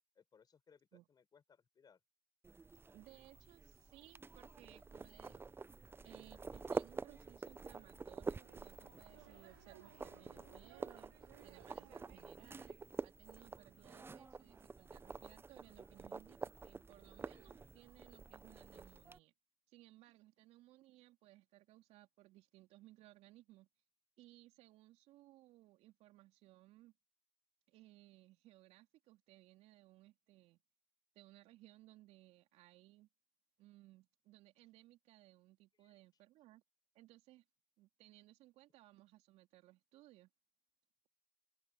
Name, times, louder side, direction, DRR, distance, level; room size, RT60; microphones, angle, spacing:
voice 1, 0.1-2.0 35.7-36.0, left 6 dB, 35° left, 6.0 m, -68 dB
sound 1, 2.4-19.2, right 4 dB, 20° right, 0.9 m, -48 dB
voice 2, 2.9-5.5 6.0-11.1 11.4-12.8 13.0-19.3 19.7-23.7 24.2-26.9 27.7-30.6 31.1-33.1 33.6-36.6 36.9-37.4 37.8-40.3, right 17 dB, 60° right, 3.1 m, -62 dB
sound 2, 7.5-12.9, right 20 dB, 75° right, 0.9 m, -64 dB
sound 3, 8.7-11.9, left 17 dB, 75° left, 2.3 m, -70 dB
open air
hypercardioid pair, 70°, 12 cm